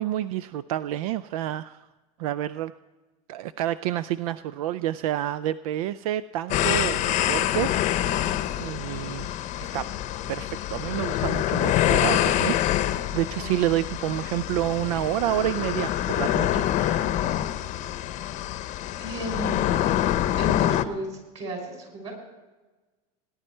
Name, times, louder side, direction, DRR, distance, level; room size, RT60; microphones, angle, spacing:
voice 1, 0.0-1.8 2.2-2.7 3.3-9.9 10.3-12.6 13.1-17.2, right 13 dB, 80° right, 16 dB, 0.4 m, -29 dB
sound 1, 6.5-20.8, left 12 dB, 40° left, 0.8 m, -26 dB
voice 2, 13.4-13.7 18.4-18.5 19.0-19.9 20.4-22.1, right 2 dB, 35° right, 2 dB, 5.9 m, -35 dB
18.5 x 10.5 x 4.3 m, 1.2 s
supercardioid pair, 130°, 18 cm